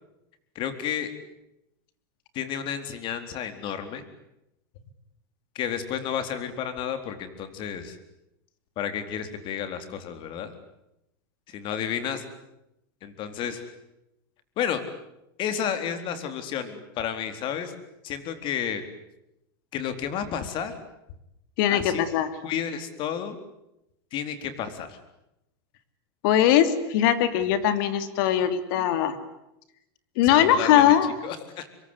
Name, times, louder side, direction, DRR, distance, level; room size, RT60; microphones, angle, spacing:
voice 1, 0.6-1.1 2.3-4.0 5.5-8.0 8.8-10.5 11.5-12.3 13.0-13.7 14.6-14.8 15.4-17.7 18.0-18.8 19.7-20.8 21.7-22.0 22.4-23.4 24.1-25.0 30.2-30.9 31.2-31.7, left 8 dB, 40° left, 9 dB, 4.0 m, -31 dB
voice 2, 21.6-22.3 26.2-29.2 30.2-31.1, left 10 dB, 60° left, 11 dB, 3.1 m, -21 dB
26.0 x 23.0 x 9.8 m, 0.86 s
supercardioid pair, 130°, 13 cm